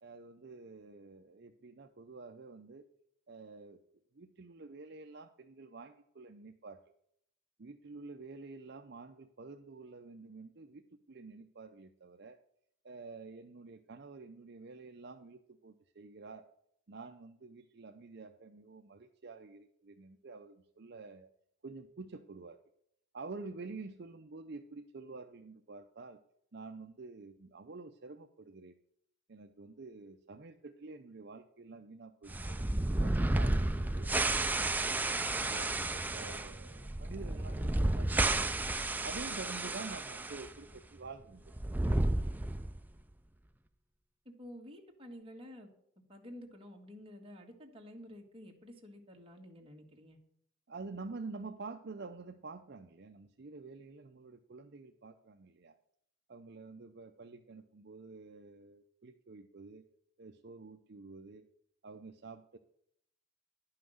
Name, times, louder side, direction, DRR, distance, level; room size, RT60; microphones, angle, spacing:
voice 1, 0.0-2.9 3.3-3.8 4.1-6.8 7.6-12.4 12.8-16.5 16.9-21.3 21.6-22.6 23.1-26.2 26.5-28.7 29.3-32.7 33.0-34.8 35.4-38.6 39.0-41.6 50.7-55.8 56.3-59.8 60.2-61.5 61.8-62.6, right 3 dB, 50° right, 5 dB, 0.6 m, -49 dB
Volcano Lava Steam Burst, 32.3-40.5 40.7-40.8 41.5-42.8, right 2 dB, 10° right, 0.4 m, -32 dB
voice 2, 44.3-45.7 46.1-50.2, equal, 25° right, 1 dB, 1.7 m, -51 dB
11.0 x 5.8 x 7.7 m, 0.71 s
head